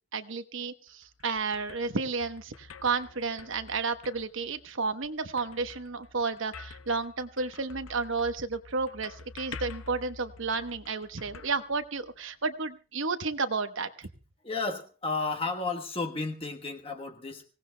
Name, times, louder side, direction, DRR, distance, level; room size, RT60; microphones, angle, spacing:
voice 1, 0.1-14.1, right 4 dB, 65° right, 9 dB, 1.0 m, -32 dB
sound 1, 0.9-12.4, left 4 dB, 80° left, 0.8 m, -49 dB
voice 2, 14.4-17.4, left 3 dB, 25° left, 3 dB, 1.2 m, -33 dB
25.0 x 17.5 x 2.2 m, 0.34 s
head